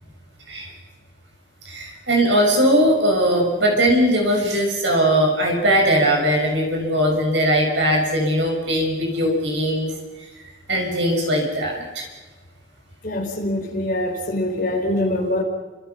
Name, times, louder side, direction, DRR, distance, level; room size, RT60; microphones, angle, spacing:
voice 1, 1.6-9.9 10.7-12.0, equal, 75° right, 1 dB, 6.6 m, -19 dB
voice 2, 13.0-15.4, left 1 dB, 45° left, 1 dB, 4.9 m, -24 dB
29.5 x 26.0 x 5.9 m, 1.3 s
head